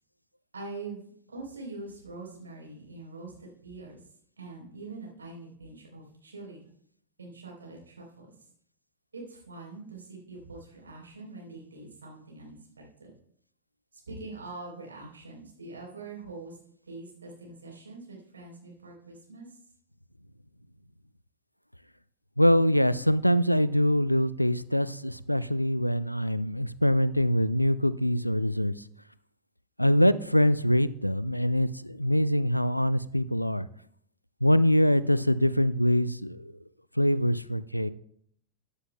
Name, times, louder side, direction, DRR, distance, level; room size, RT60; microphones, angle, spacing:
voice 1, 0.5-4.0 4.4-6.6 7.2-8.3 9.1-13.1 14.1-16.6 16.9-19.5, right 3 dB, 75° right, -1 dB, 3.6 m, -44 dB
voice 2, 22.4-28.7 29.8-33.7 34.4-36.5 37.0-37.9, equal, 90° left, 17 dB, 0.3 m, -24 dB
14.0 x 9.7 x 2.2 m, 0.66 s
figure-of-eight pair, 90°, 0 cm